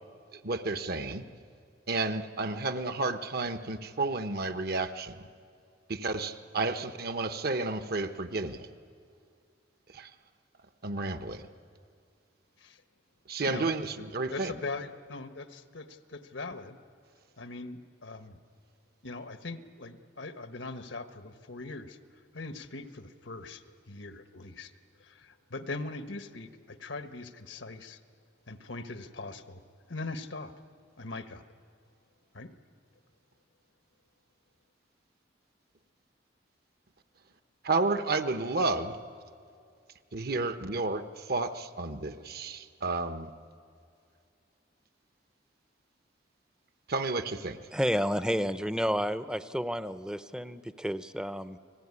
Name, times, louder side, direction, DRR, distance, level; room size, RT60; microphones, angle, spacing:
voice 1, 0.3-1.2 1.9-5.3 5.9-8.7 9.9-10.1 10.8-11.5 13.3-14.5 37.6-38.9 40.1-43.3 46.9-47.6, right 3 dB, 55° right, 9 dB, 1.1 m, -31 dB
voice 2, 14.3-16.8 17.4-18.4 19.0-22.0 22.3-24.7 25.0-28.0 28.5-29.6 29.9-30.5 31.0-31.4 32.3-32.5, left 3 dB, 85° left, 8 dB, 1.4 m, -41 dB
voice 3, 47.7-51.6, equal, 5° right, 12 dB, 0.6 m, -31 dB
29.5 x 19.5 x 9.7 m, 2.3 s
head